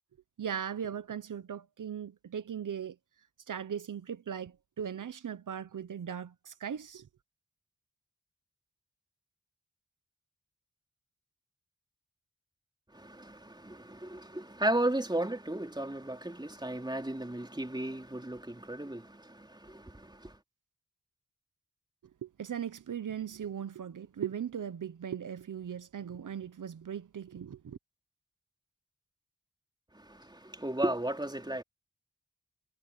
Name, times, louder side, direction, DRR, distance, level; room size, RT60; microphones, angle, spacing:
voice 1, 0.4-3.0 3.5-7.1 22.2-27.8, right 8 dB, 80° right, 0.9 m, -38 dB
voice 2, 12.9-20.4 29.9-31.6, right 1 dB, 15° right, 3.7 m, -35 dB
wide cardioid pair, 65°, 31 cm